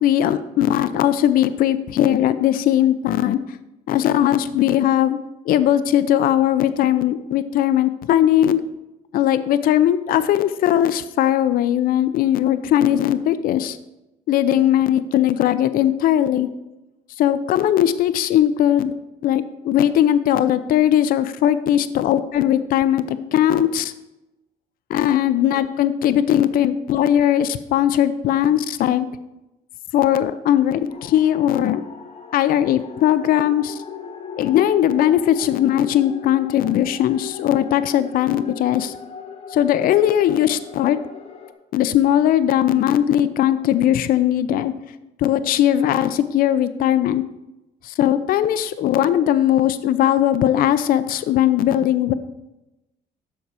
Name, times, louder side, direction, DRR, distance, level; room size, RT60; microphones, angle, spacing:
voice 1, 0.0-3.4 3.9-5.2 5.5-8.6 9.1-13.8 14.3-16.5 17.2-18.9 19.2-23.9 24.9-29.1 29.9-31.8 32.3-33.8 34.4-38.9 39.5-41.0 41.7-44.7 45.2-47.2 47.8-52.1, left 11 dB, 60° left, 13 dB, 0.4 m, -19 dB
sound 1, 30.9-41.5, left 7 dB, 35° left, 1.0 m, -38 dB
7.3 x 5.4 x 4.8 m, 0.98 s
cardioid pair, 110°, 17 cm